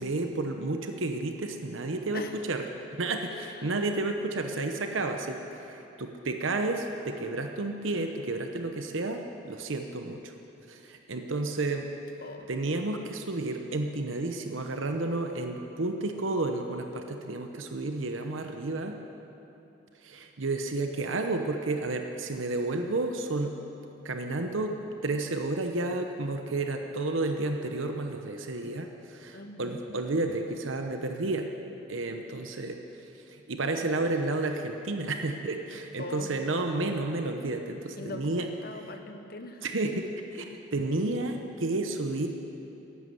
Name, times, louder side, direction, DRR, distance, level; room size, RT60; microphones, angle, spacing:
voice 1, 0.0-2.6 2.9-10.3 10.7-11.9 12.5-18.9 20.0-23.6 24.0-31.5 31.9-32.8 33.3-38.5 39.6-42.3, right 2 dB, 75° right, 5 dB, 0.9 m, -31 dB
voice 2, 3.3-3.8 12.2-12.5 29.3-29.8 36.0-36.4 38.0-39.7, left 2 dB, 50° left, 7 dB, 1.0 m, -41 dB
14.0 x 11.5 x 7.9 m, 2.9 s
head